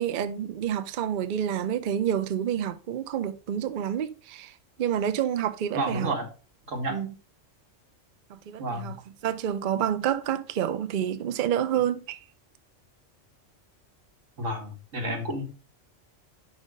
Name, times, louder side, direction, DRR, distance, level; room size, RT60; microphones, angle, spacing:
voice 1, 0.0-4.5 4.8-6.1 6.9-7.1 8.3-9.0 9.2-12.2, right 9 dB, 55° right, 0.6 m, -28 dB
voice 2, 5.7-6.3 6.7-7.0 8.6-8.9 14.4-15.4, right 1 dB, 90° right, 2.2 m, -30 dB
5.5 x 5.2 x 5.1 m
omnidirectional pair, 1.3 m